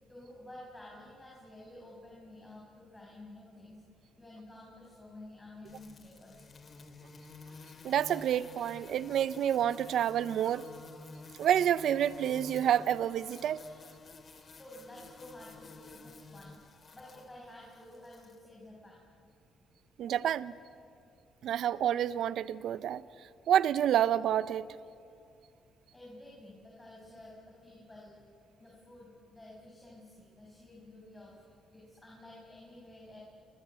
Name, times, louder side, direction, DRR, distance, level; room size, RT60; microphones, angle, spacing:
voice 1, 0.1-6.5 14.5-19.1 25.9-28.1 28.6-33.2, left 1 dB, 15° left, 7.0 m, -51 dB
sound 1, 5.6-18.4, left 3 dB, 40° left, 2.9 m, -52 dB
voice 2, 7.8-10.6 11.4-13.6 20.0-20.5 21.4-23.0 23.5-24.7, right 10 dB, 70° right, 0.8 m, -28 dB
29.5 x 24.5 x 8.4 m
cardioid pair, 90°, 0 cm